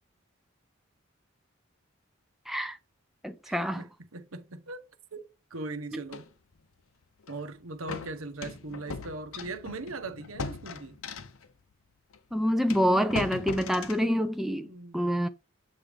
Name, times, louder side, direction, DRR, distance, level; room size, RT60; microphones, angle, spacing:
voice 1, 2.5-2.8 3.2-3.8 12.3-14.7 14.9-15.3, equal, ahead, 0.4 m, -26 dB
voice 2, 3.4-4.8 5.1-6.3 7.3-11.0 14.6-15.1, right 2 dB, 80° right, 1.1 m, -40 dB
sound 1, 6.1-6.3 7.2-7.4 7.9-11.5 12.1-12.2 12.7-14.1, left 4 dB, 85° left, 0.8 m, -39 dB
8.4 x 3.4 x 4.9 m
head